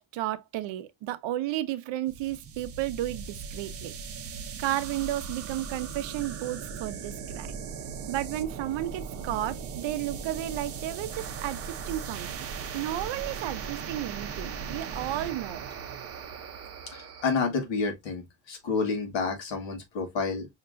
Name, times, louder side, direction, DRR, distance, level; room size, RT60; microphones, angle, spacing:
voice 1, 0.0-3.9 4.6-7.6 8.1-12.5 12.7-15.6, right 14 dB, 65° right, 0.7 m, -33 dB
sound 1, 2.1-17.4, right 6 dB, 30° right, 0.6 m, -38 dB
voice 2, 16.9-20.5, left 4 dB, 65° left, 1.7 m, -29 dB
5.6 x 2.9 x 2.5 m
cardioid pair, 180°, 48 cm